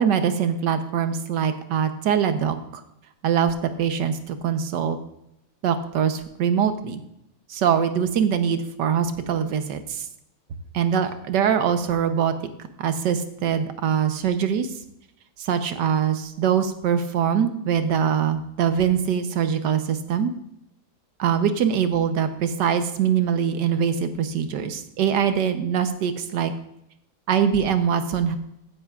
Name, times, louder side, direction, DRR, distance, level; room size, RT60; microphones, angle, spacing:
voice 1, 0.0-2.8 3.2-5.0 5.6-7.0 7.5-10.1 10.7-12.3 12.8-14.8 15.4-20.3 21.2-26.5 27.3-28.4, right 8 dB, 85° right, 9 dB, 1.5 m, -23 dB
15.0 x 9.8 x 2.4 m, 0.81 s
omnidirectional pair, 1.8 m